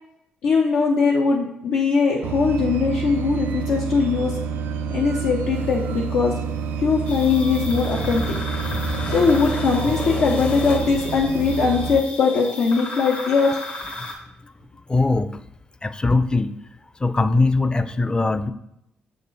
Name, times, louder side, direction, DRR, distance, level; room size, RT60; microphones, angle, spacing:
voice 1, 0.4-4.3 4.9-6.3 6.8-8.2 9.0-13.6, left 5 dB, 85° left, -3 dB, 0.8 m, -20 dB
sound 1, 2.2-12.0, right 6 dB, 80° right, 0.3 m, -28 dB
sound 2, 5.5-10.8, left 3 dB, 50° left, 0.9 m, -34 dB
sound 3, 7.1-14.1, left 3 dB, 70° left, 1.7 m, -34 dB
voice 2, 14.9-15.4 15.8-16.6 17.0-18.5, left 3 dB, 25° left, 11 dB, 0.5 m, -21 dB
6.6 x 4.3 x 3.3 m, 0.79 s
supercardioid pair, 60°, 4 cm